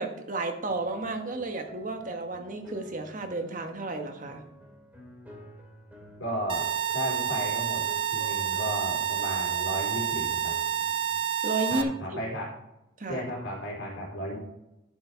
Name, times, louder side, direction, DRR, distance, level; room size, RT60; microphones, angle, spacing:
voice 1, 0.0-4.4 11.4-11.9 13.0-13.2, right 2 dB, 45° right, 4 dB, 1.3 m, -32 dB
sound 1, 0.7-11.1, equal, 10° right, 2.3 m, -51 dB
voice 2, 6.2-6.7 6.9-7.8 8.1-10.5 11.7-12.5 13.1-14.4, equal, 80° left, -4 dB, 3.5 m, -34 dB
sound 2, 6.5-11.8, right 9 dB, 25° right, 0.7 m, -29 dB
11.0 x 7.0 x 4.5 m, 0.92 s
head